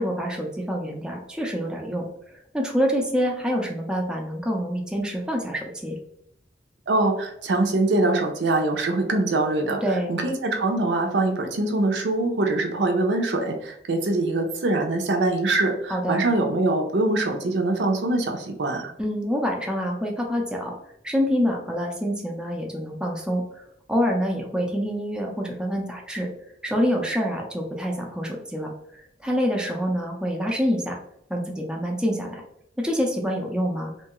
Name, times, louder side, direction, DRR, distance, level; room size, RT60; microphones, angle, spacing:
voice 1, 0.0-2.1 2.5-6.0 9.8-10.1 15.9-16.2 19.0-20.8 21.0-23.4 23.9-26.3 26.6-28.7 29.2-31.0 31.3-32.4 32.8-33.9, equal, 5° right, 0 dB, 0.4 m, -26 dB
voice 2, 6.9-18.9, right 2 dB, 75° right, 3 dB, 0.5 m, -23 dB
2.7 x 2.3 x 2.9 m, 0.73 s
head